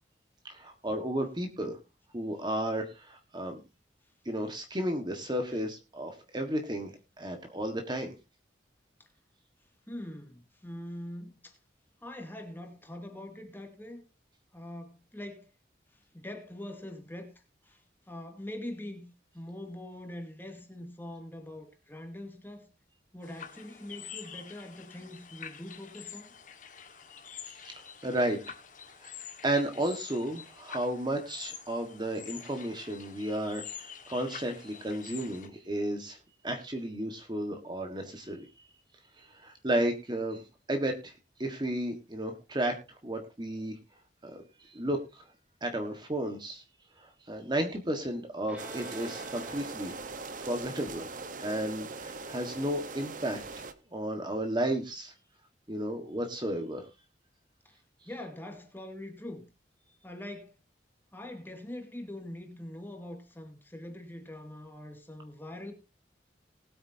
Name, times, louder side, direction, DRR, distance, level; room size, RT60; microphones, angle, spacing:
voice 1, 0.5-1.8 2.1-3.6 4.2-8.1 27.6-28.4 29.0-29.1 29.4-36.2 36.4-38.7 39.2-40.4 40.7-41.1 41.4-42.8 43.0-43.7 44.2-45.2 45.6-46.6 47.0-49.9 50.4-51.1 51.4-53.4 53.9-55.1 55.7-56.9, right 1 dB, 25° right, 1.5 m, -33 dB
voice 2, 9.9-11.6 12.0-14.0 14.5-15.5 15.9-17.3 17.6-17.8 18.1-19.0 19.3-22.7 23.1-26.3 57.6-57.8 58.0-59.5 60.0-60.6 61.1-65.7, left 1 dB, 10° left, 2.3 m, -43 dB
sound 1, 23.2-35.5, left 8 dB, 45° left, 1.7 m, -47 dB
Bowed string instrument, 48.5-52.0, right 2 dB, 10° right, 2.2 m, -51 dB
sound 2, 48.6-53.7, right 4 dB, 45° right, 1.1 m, -41 dB
20.0 x 8.7 x 2.8 m
head